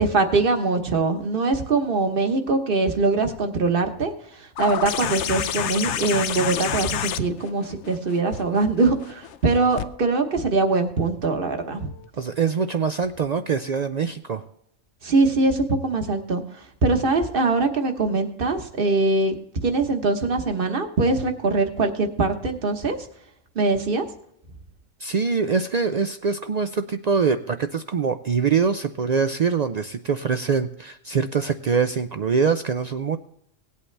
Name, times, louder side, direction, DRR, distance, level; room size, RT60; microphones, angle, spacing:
voice 1, 0.0-11.9 15.0-16.4 16.8-19.3 19.6-23.0 23.5-24.0, right 3 dB, 45° right, 6 dB, 1.3 m, -22 dB
sound 1, 4.6-9.9 11.2-11.3, left 10 dB, 70° left, 0.9 m, -29 dB
voice 2, 12.2-14.4 25.0-33.2, right 5 dB, 70° right, 9 dB, 0.4 m, -24 dB
18.0 x 8.4 x 3.3 m, 0.72 s
omnidirectional pair, 1.3 m